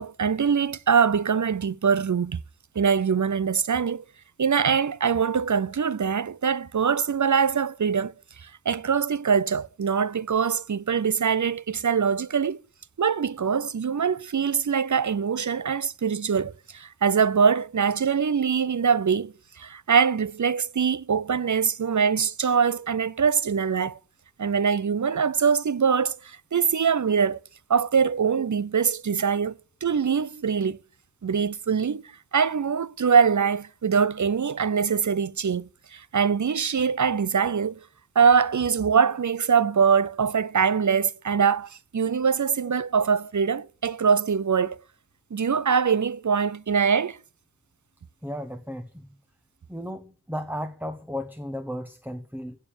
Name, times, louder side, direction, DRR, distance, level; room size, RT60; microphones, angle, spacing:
voice 1, 0.0-2.4 2.8-4.0 4.4-8.1 8.4-12.6 13.0-24.0 24.4-27.4 27.7-30.8 31.2-32.0 32.3-37.8 38.2-44.8 45.3-47.2, right 6 dB, 50° right, 0.5 m, -23 dB
voice 2, 48.2-49.1 49.7-52.6, equal, 5° right, 1.0 m, -34 dB
16.0 x 7.3 x 7.0 m
wide cardioid pair, 40°, 37 cm